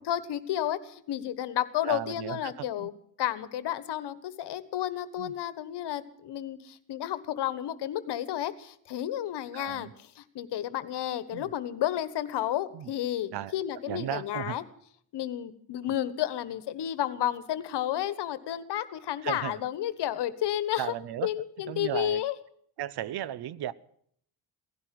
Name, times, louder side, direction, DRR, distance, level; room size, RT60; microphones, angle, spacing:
voice 1, 0.1-2.9 3.2-14.6 15.1-20.9 21.2-22.3, left 12 dB, 70° left, 1.4 m, -32 dB
voice 2, 1.8-2.9 5.2-5.3 9.5-9.9 11.3-11.5 12.7-12.9 13.3-13.5 13.9-14.6 19.2-19.6 20.8-21.3 21.7-22.2 22.8-23.7, right 12 dB, 65° right, 0.9 m, -35 dB
16.5 x 11.5 x 7.7 m
supercardioid pair, 75°, 43 cm